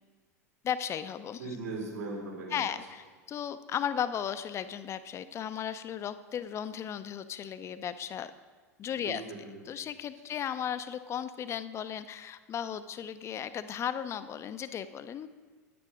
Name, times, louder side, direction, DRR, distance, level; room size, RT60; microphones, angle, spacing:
voice 1, 0.6-1.4 2.5-8.3 8.8-9.2 9.7-15.3, left 9 dB, 30° left, 13 dB, 0.6 m, -35 dB
voice 2, 1.4-2.7 8.9-9.6, right 3 dB, 75° right, -3 dB, 3.9 m, -39 dB
10.5 x 9.3 x 5.0 m, 1.4 s
figure-of-eight pair, 80°, 9 cm